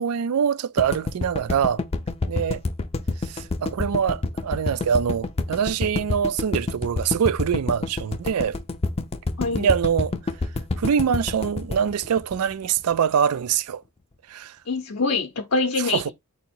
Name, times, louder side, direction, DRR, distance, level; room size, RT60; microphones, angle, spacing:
voice 1, 0.0-1.8 2.3-2.6 3.2-8.6 9.6-10.1 10.8-13.8 14.3-14.6 15.9-16.0, right 7 dB, 90° right, 0.4 m, -24 dB
sound 1, 0.8-12.9, left 3 dB, 25° left, 0.5 m, -27 dB
voice 2, 9.4-9.7 14.7-16.1, left 3 dB, 70° left, 0.7 m, -25 dB
3.8 x 2.9 x 4.3 m
head